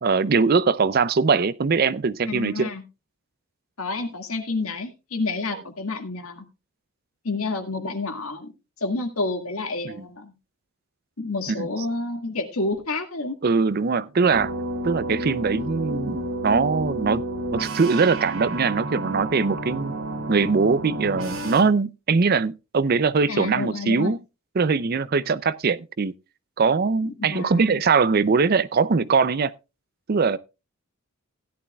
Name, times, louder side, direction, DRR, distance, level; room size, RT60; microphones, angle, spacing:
voice 1, 0.0-2.7 9.8-10.1 11.5-11.7 13.4-14.5 14.8-17.2 17.5-19.9 20.3-24.2 24.6-26.1 26.6-29.5 30.1-30.4, right 4 dB, 45° right, 0.5 m, -21 dB
voice 2, 2.3-2.8 3.8-6.4 7.2-8.5 8.8-10.3 11.2-13.4 23.3-24.1 27.0-27.8, left 3 dB, 80° left, 2.0 m, -29 dB
sound 1, 14.3-21.6, right 1 dB, 60° right, 2.4 m, -31 dB
16.5 x 11.0 x 2.3 m
head